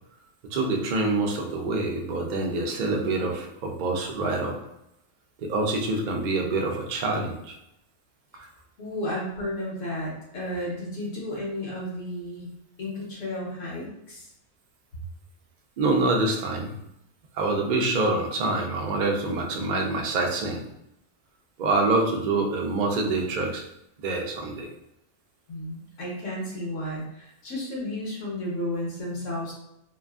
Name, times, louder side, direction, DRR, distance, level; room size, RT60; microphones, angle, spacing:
voice 1, 0.5-4.5 5.4-7.6 8.4-8.5 15.8-16.7 17.3-20.6 21.6-23.6 24.0-24.7, right 2 dB, 60° right, 1 dB, 0.5 m, -26 dB
voice 2, 8.8-12.5 12.8-14.3 25.5-29.5, left 1 dB, 85° left, -4 dB, 1.3 m, -33 dB
2.9 x 2.5 x 2.3 m, 0.82 s
omnidirectional pair, 1.3 m